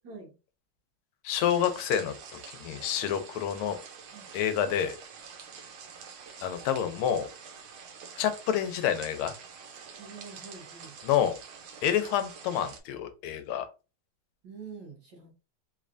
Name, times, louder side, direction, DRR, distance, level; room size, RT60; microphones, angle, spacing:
voice 1, 1.2-2.1 2.5-3.8 4.3-5.0 6.4-7.3 8.2-9.3 11.0-11.4 11.8-13.7, left 9 dB, 90° left, 9 dB, 1.5 m, -28 dB
sound 1, 1.4-12.8, right 6 dB, 85° right, 1.6 m, -47 dB
voice 2, 10.0-11.0 14.4-15.3, right 4 dB, 60° right, 0 dB, 1.7 m, -45 dB
3.7 x 3.2 x 2.5 m, 0.30 s
omnidirectional pair, 2.3 m